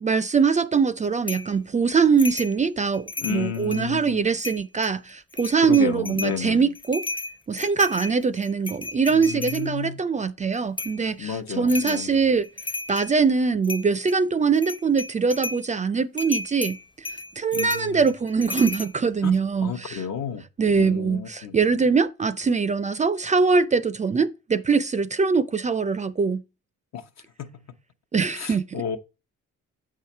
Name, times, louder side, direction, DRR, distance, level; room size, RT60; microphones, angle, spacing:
voice 1, 0.0-7.1 7.5-12.5 12.9-16.8 17.4-20.0 20.6-26.4 28.1-28.7, right 5 dB, 25° right, 0.4 m, -22 dB
sound 1, 1.3-1.5 2.2-2.6 2.9-3.9 4.4-4.9 5.3-6.4 6.8-9.7 10.8-11.0 11.7-12.1 12.4-13.1 13.6-14.2 14.6-15.6 16.2-18.9, left 2 dB, 15° left, 0.6 m, -34 dB
voice 2, 3.2-4.3 5.6-6.7 9.1-10.0 11.2-12.2 17.5-18.1 19.2-19.3 19.6-20.4 20.8-21.5 26.9-27.1 27.4-27.5 28.3-29.0, left 7 dB, 65° left, 0.9 m, -32 dB
7.6 x 4.8 x 4.3 m
cardioid pair, 90°, 30 cm